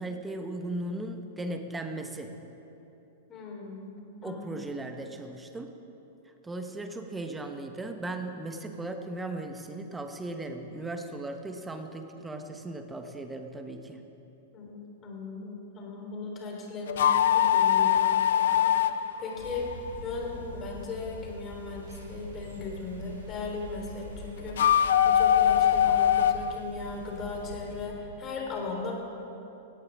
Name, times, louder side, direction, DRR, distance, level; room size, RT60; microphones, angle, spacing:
voice 1, 0.0-2.3 4.2-5.7 6.4-14.0, right 2 dB, 10° right, 5 dB, 1.3 m, -37 dB
voice 2, 3.3-4.4 14.5-24.6 25.0-28.9, left 3 dB, 30° left, -1 dB, 3.9 m, -38 dB
sound 1, 16.9-20.2 24.5-26.6, left 10 dB, 65° left, 0.5 m, -22 dB
sound 2, 19.3-27.8, left 1 dB, 85° right, 4.2 m, -43 dB
18.0 x 16.5 x 3.7 m, 3.0 s
figure-of-eight pair, 105°, 0 cm